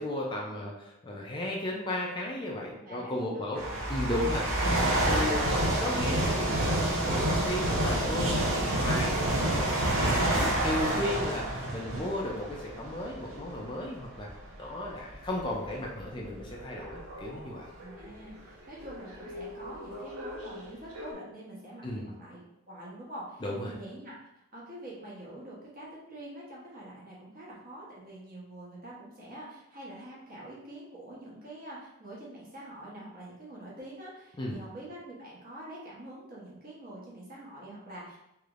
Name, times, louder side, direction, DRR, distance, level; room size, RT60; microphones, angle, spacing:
voice 1, 0.0-3.6 3.9-11.5 11.7-14.3 14.6-17.7 21.8-22.1 23.4-23.7 34.4-34.6, left 1 dB, 20° left, -2 dB, 0.4 m, -35 dB
voice 2, 2.8-3.7 17.8-24.2 24.5-38.2, right 1 dB, 45° right, -6 dB, 1.1 m, -45 dB
sound 1, 3.6-13.5 14.2-14.4 15.1-18.2 18.9-20.6 21.0-21.1, right 1 dB, 75° right, 0.8 m, -29 dB
3.2 x 3.0 x 2.4 m, 0.89 s
head